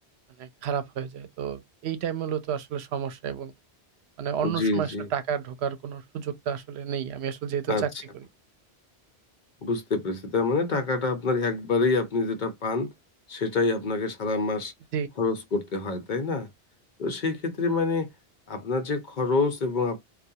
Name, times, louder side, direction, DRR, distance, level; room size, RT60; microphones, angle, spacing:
voice 1, 0.4-3.5 4.2-7.9 14.9-15.1, right 8 dB, 85° right, 0.8 m, -31 dB
voice 2, 4.4-5.1 7.7-7.8 9.6-12.9 13.3-14.7 15.2-16.5 17.0-18.1 18.5-20.1, left 3 dB, 55° left, 0.7 m, -26 dB
2.2 x 2.2 x 2.6 m
omnidirectional pair, 1.1 m